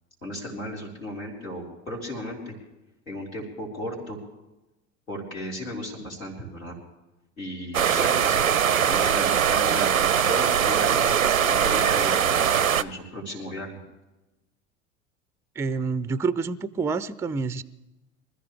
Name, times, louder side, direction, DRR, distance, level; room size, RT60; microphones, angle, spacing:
voice 1, 0.2-2.5 3.1-4.2 5.1-6.8 7.4-13.8, equal, 85° left, -3 dB, 4.3 m, -35 dB
sound 1, 7.7-12.8, right 8 dB, 85° right, 0.6 m, -21 dB
voice 2, 15.6-17.6, right 4 dB, 5° right, 15 dB, 0.4 m, -27 dB
24.5 x 14.0 x 3.4 m, 1.0 s
figure-of-eight pair, 75°, 40 cm